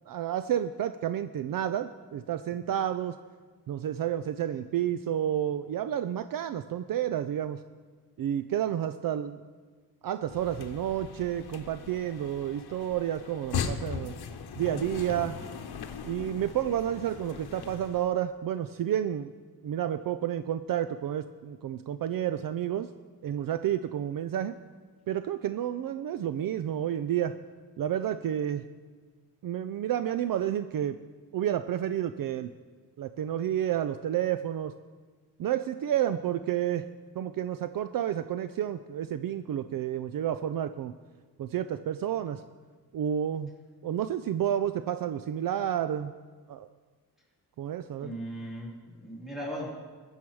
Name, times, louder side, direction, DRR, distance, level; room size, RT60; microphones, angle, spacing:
voice 1, 0.1-3.2 3.7-7.6 8.2-9.4 10.0-14.2 14.6-15.4 16.0-19.3 19.6-22.9 23.2-24.6 25.1-27.4 27.8-28.6 29.4-31.0 31.3-32.5 33.0-34.7 35.4-36.9 37.2-41.0 41.4-42.4 42.9-43.5 43.8-46.1 46.5-46.7 47.6-48.1, right 10 dB, 60° right, 11 dB, 0.5 m, -30 dB
sound 1, 10.2-18.1, left 7 dB, 85° left, 0.9 m, -39 dB
voice 2, 48.0-49.7, equal, ahead, -4 dB, 2.9 m, -38 dB
21.0 x 7.3 x 4.7 m, 1.4 s
wide cardioid pair, 175°, 38 cm